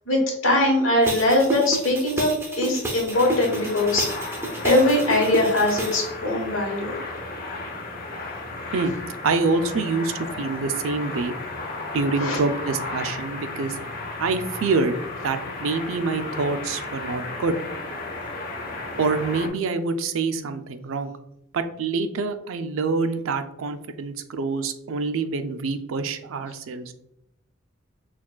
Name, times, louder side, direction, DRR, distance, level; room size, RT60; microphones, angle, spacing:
voice 1, 0.1-4.1 4.4-7.0 12.1-12.4, left 1 dB, 75° left, -1 dB, 1.2 m, -21 dB
sound 1, 1.0-6.0, right 2 dB, 10° right, 0.5 m, -30 dB
sound 2, 3.1-19.5, left 2 dB, 45° left, 0.7 m, -34 dB
voice 2, 9.2-11.3 11.9-13.8 14.2-15.0 15.2-17.6 19.0-21.1 21.5-26.9, right 4 dB, 75° right, 8 dB, 0.4 m, -26 dB
6.0 x 2.3 x 2.3 m, 0.79 s
head